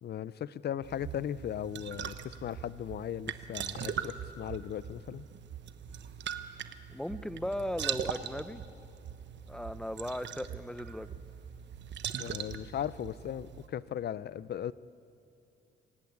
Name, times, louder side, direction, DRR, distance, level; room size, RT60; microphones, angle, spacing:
voice 1, 0.0-5.2 12.2-14.7, left 10 dB, 55° left, 18 dB, 0.6 m, -37 dB
sound 1, 0.8-13.7, right 9 dB, 65° right, 1.1 m, -41 dB
voice 2, 6.9-8.6 9.5-11.2, left 1 dB, 5° left, 13 dB, 0.8 m, -37 dB
27.0 x 15.5 x 9.6 m, 2.7 s
cardioid pair, 90°, 20 cm